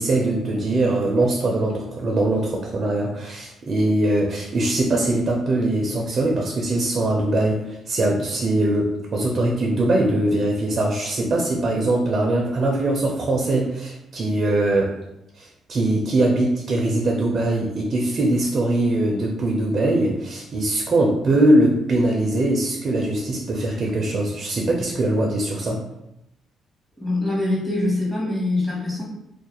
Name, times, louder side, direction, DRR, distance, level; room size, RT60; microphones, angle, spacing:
voice 1, 0.0-14.9 15.4-25.8, right 1 dB, 50° right, -1 dB, 0.4 m, -21 dB
voice 2, 27.0-29.0, left 2 dB, 10° left, -5 dB, 0.9 m, -23 dB
2.3 x 2.0 x 2.9 m, 0.85 s
cardioid pair, 90°, 0 cm